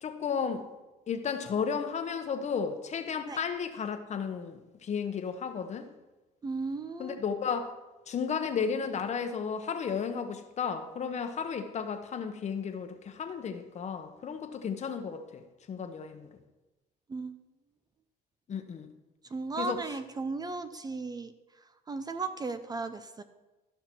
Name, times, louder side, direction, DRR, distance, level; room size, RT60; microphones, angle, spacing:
voice 1, 0.0-0.6 1.1-5.9 7.0-7.7 8.1-15.4 15.7-16.3 18.5-18.9 19.6-19.8, left 6 dB, 40° left, 8 dB, 0.9 m, -33 dB
voice 2, 6.4-7.2 17.1-17.4 19.3-21.3 21.9-23.2, right 3 dB, 25° right, 11 dB, 0.5 m, -35 dB
13.0 x 5.7 x 4.5 m, 1.1 s
cardioid pair, 110°, 17 cm